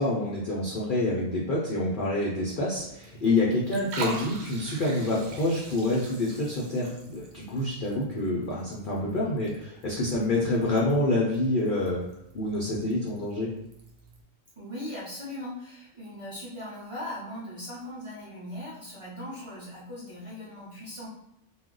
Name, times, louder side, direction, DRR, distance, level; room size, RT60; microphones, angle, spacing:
voice 1, 0.0-12.0 12.3-13.5, left 2 dB, 60° left, -5 dB, 0.5 m, -27 dB
Liquid, 2.8-14.2, right 3 dB, 75° right, 1.1 m, -44 dB
voice 2, 14.6-21.1, left 1 dB, 35° right, -8 dB, 0.6 m, -39 dB
2.4 x 2.1 x 3.7 m, 0.78 s
omnidirectional pair, 1.5 m